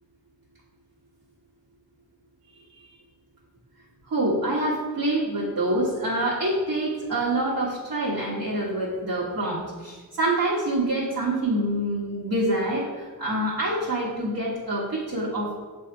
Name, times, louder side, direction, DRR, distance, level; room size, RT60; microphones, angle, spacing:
voice 1, 4.1-15.6, right 1 dB, 65° right, -8 dB, 1.4 m, -26 dB
6.9 x 3.5 x 4.6 m, 1.4 s
wide cardioid pair, 85°, 37 cm